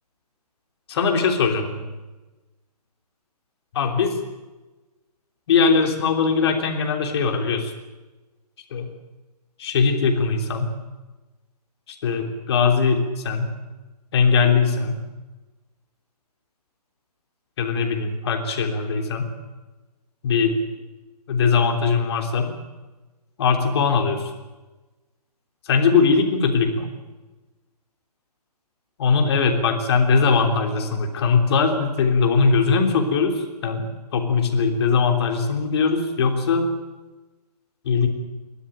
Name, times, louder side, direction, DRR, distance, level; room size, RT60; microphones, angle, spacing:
voice 1, 0.9-1.9 3.7-4.2 5.5-7.7 8.7-8.9 9.6-10.7 11.9-13.5 14.1-15.0 17.6-19.3 20.2-20.6 21.3-22.5 23.4-24.3 25.6-26.9 29.0-36.7 37.8-38.1, left 5 dB, 40° left, 4 dB, 3.4 m, -20 dB
29.5 x 13.0 x 9.1 m, 1.2 s
figure-of-eight pair, 140°, 20 cm